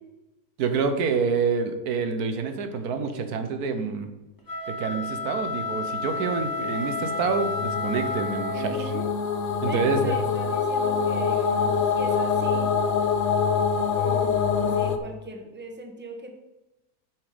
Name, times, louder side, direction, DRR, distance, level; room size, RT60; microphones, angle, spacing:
voice 1, 0.6-4.1 4.7-8.9 9.6-10.2, right 5 dB, 85° right, 7 dB, 1.4 m, -27 dB
sound 1, 4.4-8.9, left 2 dB, 15° left, 1.2 m, -31 dB
sound 2, 6.5-15.0, left 6 dB, 55° left, 0.9 m, -25 dB
voice 2, 8.5-9.1 9.6-12.7 13.9-16.4, right 1 dB, 10° right, 3 dB, 1.0 m, -38 dB
8.8 x 6.1 x 5.0 m, 1.0 s
omnidirectional pair, 1.6 m